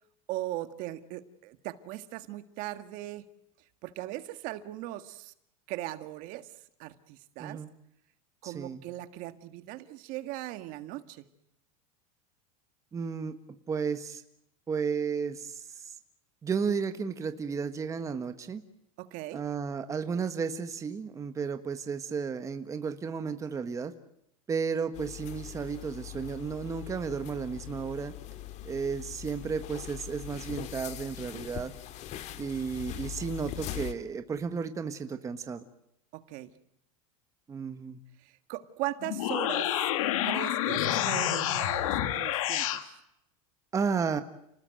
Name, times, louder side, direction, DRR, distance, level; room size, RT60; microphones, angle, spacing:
voice 1, 0.3-3.2 3.8-5.3 5.7-6.5 6.8-7.6 8.4-11.2 19.0-19.4 36.1-36.5 38.2-39.9 40.2-42.7, right 15 dB, 50° right, 11 dB, 1.8 m, -39 dB
voice 2, 7.4-7.7 8.4-8.9 12.9-13.3 13.7-14.2 14.7-15.9 16.4-18.6 19.3-23.9 24.5-28.1 28.6-31.7 32.4-35.6 37.5-38.0 43.7-44.2, right 6 dB, 20° right, 8 dB, 1.5 m, -33 dB
sound 1, 24.9-33.9, left 13 dB, 40° left, 2.0 m, -41 dB
sound 2, 39.0-42.8, left 12 dB, 75° left, 2.5 m, -28 dB
30.0 x 20.0 x 7.8 m, 0.80 s
supercardioid pair, 140°, 18 cm